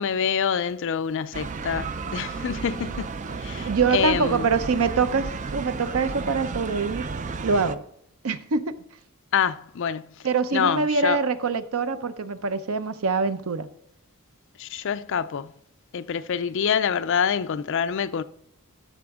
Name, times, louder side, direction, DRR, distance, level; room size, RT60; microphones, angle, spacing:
voice 1, 0.0-4.5 9.3-10.1 10.5-11.2 14.6-15.5 15.9-18.2, left 7 dB, 60° left, 0.4 m, -26 dB
sound 1, 1.3-7.8, right 4 dB, 35° right, 0.4 m, -33 dB
voice 2, 3.6-7.1 7.4-7.8 8.2-8.8 10.2-13.7, right 4 dB, 75° right, 0.6 m, -24 dB
12.5 x 6.1 x 3.6 m
head